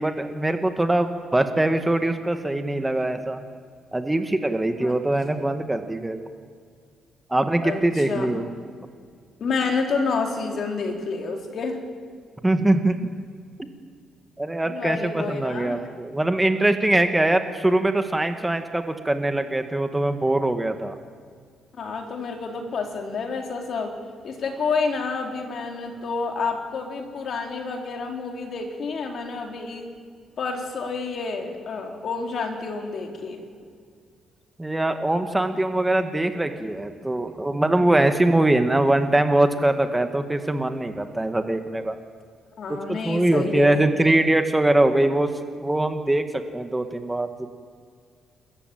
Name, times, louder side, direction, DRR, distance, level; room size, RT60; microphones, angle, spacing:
voice 1, 0.0-3.4 3.9-6.2 7.3-8.6 12.4-13.0 13.6-13.7 14.4-20.9 34.6-42.0 42.7-45.3 45.6-47.3, right 1 dB, 10° right, 7 dB, 1.7 m, -22 dB
voice 2, 7.6-8.3 9.4-11.8 14.7-15.8 21.8-23.9 24.2-29.9 30.4-33.4 42.6-44.1, left 4 dB, 60° left, 2 dB, 4.1 m, -29 dB
29.0 x 14.5 x 9.2 m, 2.1 s
cardioid pair, 90°, 0 cm